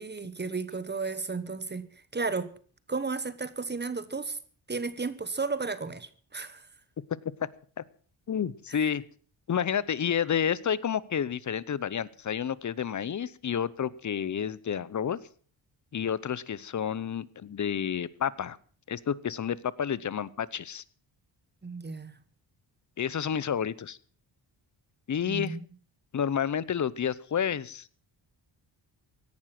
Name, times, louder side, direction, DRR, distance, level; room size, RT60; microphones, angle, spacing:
voice 1, 0.0-2.5 2.9-4.4 4.7-6.7 8.7-8.9 21.6-22.2 25.3-25.6, right 4 dB, 25° right, 1.2 m, -34 dB
voice 2, 8.3-9.0 9.5-15.2 15.9-18.6 18.9-20.8 23.0-24.0 25.1-25.6 26.1-27.9, left 8 dB, 40° left, 0.8 m, -30 dB
17.0 x 11.5 x 6.0 m
cardioid pair, 105°, 45 cm